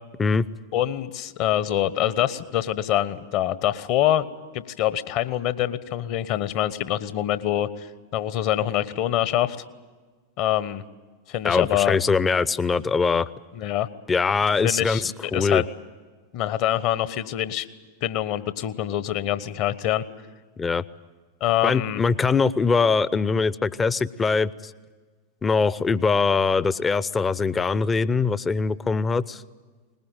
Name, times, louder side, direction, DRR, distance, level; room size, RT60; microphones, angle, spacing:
voice 1, 0.7-4.2 4.5-9.6 10.4-10.8 11.3-12.0 13.5-13.9 14.6-15.7 16.3-17.7 18.0-20.0 21.4-22.0, left 12 dB, 45° left, 15 dB, 1.1 m, -25 dB
voice 2, 11.4-13.3 14.1-15.6 20.6-20.8 21.6-24.7 25.4-29.4, left 4 dB, 15° left, 19 dB, 0.6 m, -22 dB
21.5 x 20.5 x 9.0 m, 1.4 s
figure-of-eight pair, 90°, 0 cm